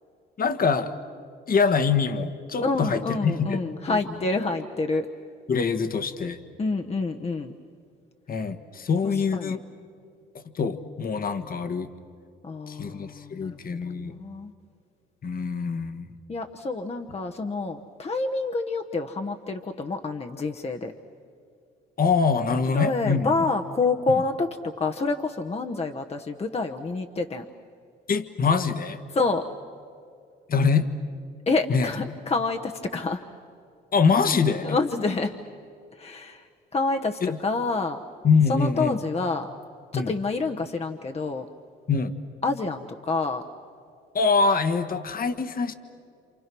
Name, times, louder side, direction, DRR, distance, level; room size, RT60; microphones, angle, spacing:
voice 1, 0.4-0.9 1.5-3.6 3.9-4.0 5.5-6.4 8.3-9.6 10.5-11.9 12.7-14.1 15.2-16.1 22.0-23.3 28.1-29.0 30.5-30.9 31.7-31.9 33.9-34.8 37.2-37.4 38.2-39.0 39.9-40.1 41.9-42.1 44.1-45.7, left 5 dB, 45° left, 10 dB, 1.5 m, -24 dB
voice 2, 2.6-5.1 6.6-7.5 9.0-9.6 12.4-14.5 16.3-20.9 22.7-27.4 29.1-29.4 31.5-33.2 34.6-35.3 36.0-38.0 38.5-39.5 39.9-41.4 42.4-43.4, left 3 dB, 30° left, 4 dB, 1.1 m, -28 dB
28.5 x 28.0 x 6.2 m, 2.4 s
cardioid pair, 90°, 20 cm